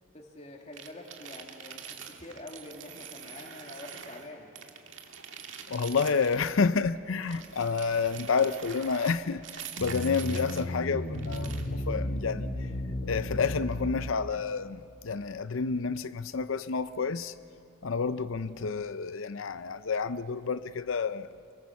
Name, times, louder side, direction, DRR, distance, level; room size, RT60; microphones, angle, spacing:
voice 1, 0.1-4.5, left 1 dB, 30° left, 2.5 m, -46 dB
sound 1, 0.7-4.3 4.6-6.6 7.2-10.7 11.1-11.7, right 7 dB, 65° right, 2.1 m, -45 dB
voice 2, 5.7-12.7 13.0-17.3 17.8-21.3, left 5 dB, 75° left, 0.6 m, -29 dB
sound 2, 9.8-14.3, left 1 dB, 50° left, 3.3 m, -34 dB
28.5 x 23.5 x 7.2 m
head